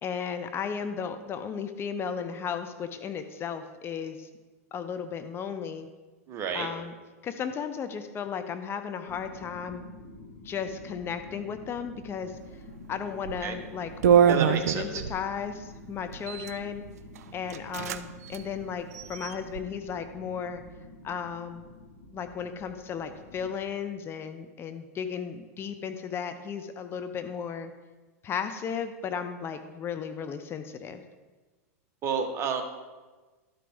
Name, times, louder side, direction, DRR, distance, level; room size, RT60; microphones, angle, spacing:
voice 1, 0.0-4.3 4.7-5.9 6.5-6.9 7.2-9.8 10.4-12.4 12.9-13.9 14.2-16.8 17.3-20.6 21.0-21.7 22.1-27.7 28.2-31.0, left 7 dB, 30° left, 9 dB, 0.6 m, -35 dB
voice 2, 6.3-6.7 13.4-13.6 14.3-15.0 32.0-32.6, right 6 dB, 35° right, 4 dB, 1.1 m, -30 dB
sound 1, 9.1-23.5, left 2 dB, 60° left, 1.5 m, -47 dB
sound 2, 13.2-13.4 14.0-15.2 16.1-16.6 17.1-17.2 17.5-18.0 18.3-18.4 18.9-19.6, right 8 dB, 80° right, 0.4 m, -24 dB
12.5 x 5.2 x 3.4 m, 1.3 s
hypercardioid pair, 110°, 8 cm